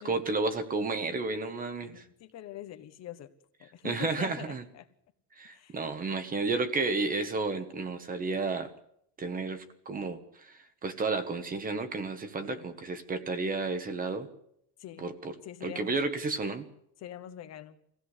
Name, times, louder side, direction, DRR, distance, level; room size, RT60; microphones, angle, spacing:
voice 1, 0.0-2.0 3.8-4.7 5.3-8.7 9.2-14.3 15.0-15.3 15.6-16.7, right 3 dB, 20° right, 10 dB, 1.2 m, -32 dB
voice 2, 1.9-3.3 3.6-4.9 5.4-5.8 12.4-12.6 14.8-15.1 15.4-16.0 17.0-17.8, left 12 dB, 45° left, 9 dB, 1.3 m, -44 dB
23.0 x 16.0 x 8.2 m, 0.74 s
cardioid pair, 170°, 38 cm